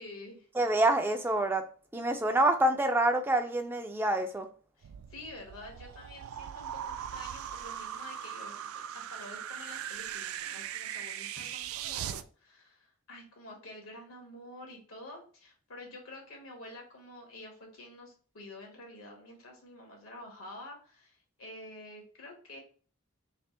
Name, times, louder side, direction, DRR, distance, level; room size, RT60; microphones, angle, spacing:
voice 1, 0.0-0.5 4.8-22.6, left 1 dB, 85° left, 1 dB, 1.4 m, -49 dB
voice 2, 0.6-1.6 1.9-4.5, right 1 dB, 10° right, 6 dB, 0.3 m, -27 dB
sound 1, 4.8-12.2, right 10 dB, 90° right, 0.3 m, -40 dB
3.3 x 2.8 x 4.3 m, 0.41 s
head